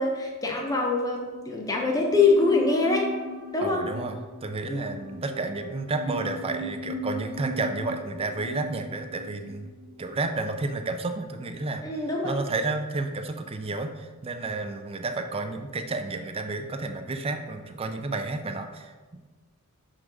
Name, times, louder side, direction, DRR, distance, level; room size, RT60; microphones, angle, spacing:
voice 1, 0.0-3.1 3.5-3.9 4.7-4.9 11.8-12.3, left 3 dB, 15° left, -1 dB, 0.8 m, -24 dB
sound 1, 1.5-10.9 11.1-11.2, equal, 90° right, 1.0 m, -38 dB
voice 2, 3.6-9.7 10.0-11.8 12.2-19.2, right 3 dB, 25° right, 6 dB, 0.5 m, -31 dB
6.4 x 3.8 x 4.6 m, 1.3 s
head